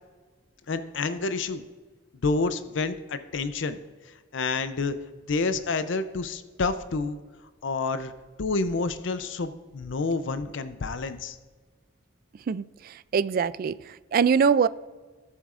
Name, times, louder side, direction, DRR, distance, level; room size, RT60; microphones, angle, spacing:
voice 1, 0.7-1.6 2.2-3.8 4.3-5.0 5.3-7.2 7.6-8.1 8.4-11.4, left 3 dB, 70° left, 11 dB, 0.5 m, -28 dB
voice 2, 12.5-14.7, right 6 dB, 50° right, 16 dB, 0.3 m, -24 dB
17.0 x 7.2 x 2.5 m, 1.4 s
head